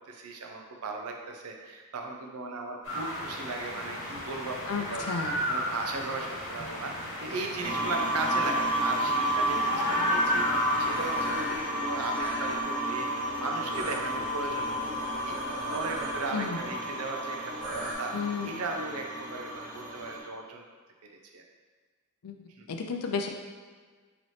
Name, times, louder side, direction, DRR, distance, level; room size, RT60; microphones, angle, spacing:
voice 1, 0.1-5.1 5.5-15.4 15.7-18.1 18.4-20.6 21.3-21.4 22.6-22.7, right 3 dB, 85° right, 2 dB, 0.5 m, -37 dB
sound 1, 2.8-12.0, left 1 dB, 65° left, 1.3 m, -34 dB
voice 2, 4.7-5.4 16.3-16.6 18.1-18.5 22.2-22.4 22.7-23.3, left 5 dB, 90° left, 4 dB, 0.5 m, -32 dB
sound 2, 7.6-20.2, right 1 dB, 35° right, 1.3 m, -31 dB
sound 3, 10.8-11.6 12.0-12.6 13.7-16.2 17.6-17.9, right 1 dB, 60° right, 1.1 m, -39 dB
4.0 x 3.0 x 3.2 m, 1.5 s
head